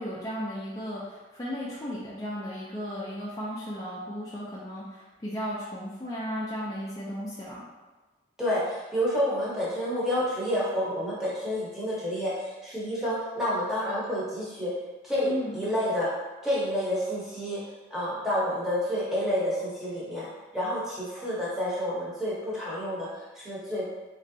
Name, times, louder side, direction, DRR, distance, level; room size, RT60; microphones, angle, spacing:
voice 1, 0.0-7.7 15.2-15.6, equal, 20° left, -7 dB, 0.3 m, -35 dB
voice 2, 8.4-14.7 15.0-16.1 16.4-17.6 17.9-20.3 20.5-23.1 23.4-23.8, equal, ahead, -9 dB, 0.8 m, -29 dB
3.1 x 2.6 x 2.6 m, 1.2 s
head